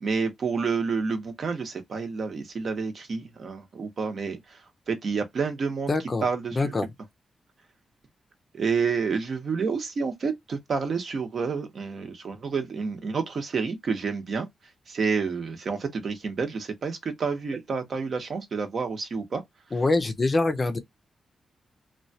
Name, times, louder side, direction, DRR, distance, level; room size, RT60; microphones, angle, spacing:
voice 1, 0.0-5.9 6.2-6.7 8.5-14.5 14.9-19.4, right 5 dB, 50° right, 0.8 m, -29 dB
voice 2, 5.9-6.3 6.5-6.9 19.7-20.8, left 3 dB, 30° left, 0.5 m, -24 dB
3.0 x 2.2 x 2.6 m
wide cardioid pair, 135°, 0 cm